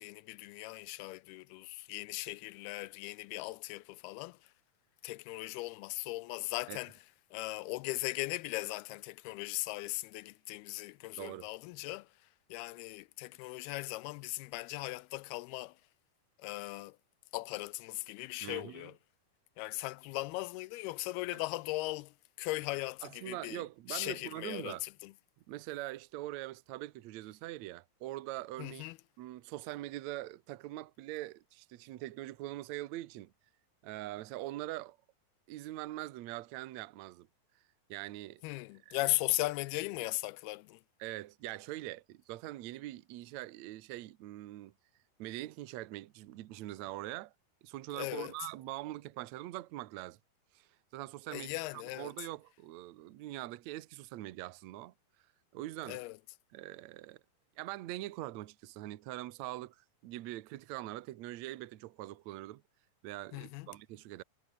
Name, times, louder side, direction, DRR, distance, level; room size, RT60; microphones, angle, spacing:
voice 1, 0.0-4.5 5.0-6.9 7.3-12.1 12.5-15.8 16.4-17.0 17.3-18.9 19.6-25.1 28.6-29.0 38.4-40.8 47.9-48.3 51.3-52.1 55.9-56.2 63.3-63.7, left 20 dB, 85° left, 2.5 m, -38 dB
voice 2, 11.2-11.5 18.4-18.9 21.3-21.4 23.0-24.8 25.5-28.8 29.2-33.3 33.8-35.0 35.5-37.3 37.9-38.4 38.9-39.0 41.0-44.7 45.2-47.3 47.6-50.2 50.5-54.9 55.5-56.0 56.5-57.2 57.6-62.6 63.0-64.2, right 16 dB, 75° right, 1.7 m, -43 dB
omnidirectional pair, 4.5 m